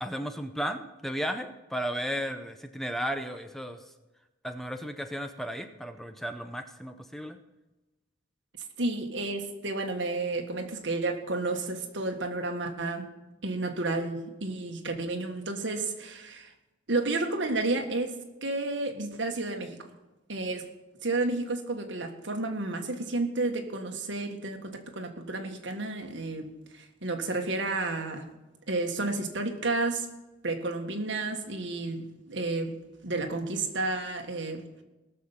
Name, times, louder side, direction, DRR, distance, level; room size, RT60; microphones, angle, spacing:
voice 1, 0.0-3.8 4.4-7.4, equal, ahead, 0.6 m, -34 dB
voice 2, 8.8-13.1 13.4-16.5 16.9-19.8 20.3-20.7 21.0-28.3 28.7-30.1 30.4-34.8, right 2 dB, 65° right, 1.6 m, -31 dB
18.5 x 6.8 x 5.7 m
head